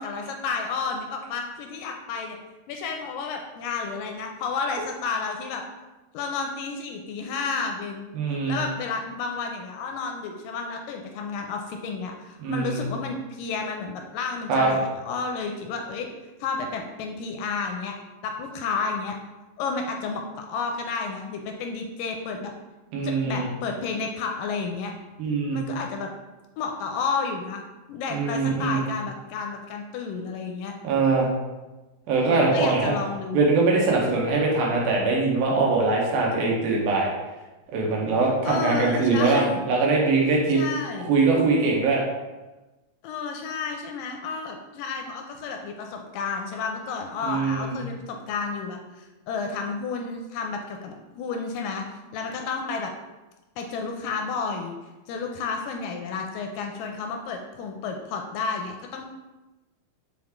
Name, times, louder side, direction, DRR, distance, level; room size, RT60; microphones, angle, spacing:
voice 1, 0.0-2.4 2.7-5.6 6.1-16.1 16.4-18.0 18.2-19.1 19.6-22.5 23.0-24.9 25.5-26.1 26.6-27.6 27.9-30.7 32.2-33.4 38.4-39.6 40.5-41.1 43.0-51.8 52.1-52.9 53.6-54.8 55.1-59.1, left 4 dB, 80° left, 3 dB, 2.1 m, -31 dB
voice 2, 8.1-8.6 12.4-12.9 14.5-14.7 22.9-23.5 25.2-25.6 28.1-28.9 30.8-31.3 32.1-32.9 33.3-37.1 37.7-40.6 41.0-42.0 47.2-47.8, right 3 dB, 80° right, -2 dB, 3.0 m, -22 dB
6.1 x 4.6 x 3.6 m, 1.1 s
omnidirectional pair, 4.1 m